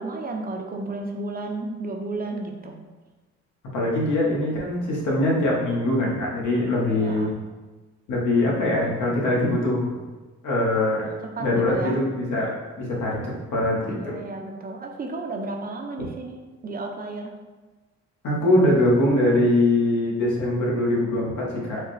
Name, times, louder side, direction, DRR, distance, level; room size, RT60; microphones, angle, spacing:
voice 1, 0.0-2.8 6.9-7.3 11.0-12.0 14.0-17.3, right 2 dB, 30° right, 3 dB, 0.5 m, -33 dB
voice 2, 3.7-7.3 8.1-10.0 10.4-11.1 11.4-13.2 13.5-13.8 14.0-14.1 18.2-21.8, left 1 dB, 80° left, -4 dB, 1.2 m, -22 dB
4.7 x 2.2 x 3.1 m, 1.2 s
cardioid pair, 90°, 30 cm